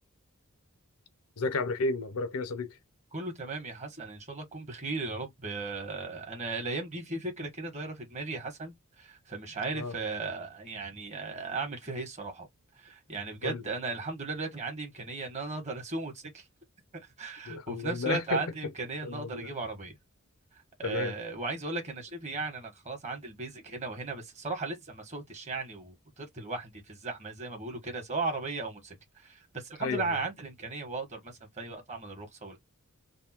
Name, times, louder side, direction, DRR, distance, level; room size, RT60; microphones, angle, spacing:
voice 1, 1.4-2.8 9.7-9.9 13.4-13.6 17.5-18.4 19.0-19.5 20.8-21.1 29.8-30.2, left 3 dB, 75° left, 0.6 m, -32 dB
voice 2, 3.1-12.5 12.8-16.4 16.9-19.9 20.8-28.9 29.2-32.6, right 3 dB, 30° right, 1.5 m, -36 dB
3.5 x 2.3 x 4.3 m
head